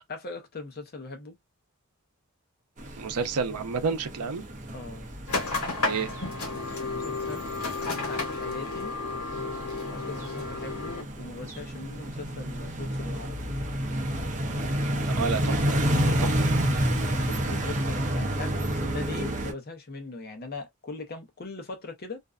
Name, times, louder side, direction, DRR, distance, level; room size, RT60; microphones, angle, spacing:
voice 1, 0.1-1.4 4.7-5.1 6.8-8.9 9.9-13.5 16.9-22.2, left 3 dB, 45° left, 0.7 m, -40 dB
sound 1, 2.8-19.5, right 1 dB, 35° right, 0.6 m, -30 dB
voice 2, 3.0-4.4 5.8-6.1 15.1-16.6, right 5 dB, 85° right, 0.6 m, -30 dB
sound 2, 5.3-11.0, left 3 dB, 85° left, 1.1 m, -32 dB
2.5 x 2.2 x 2.3 m
head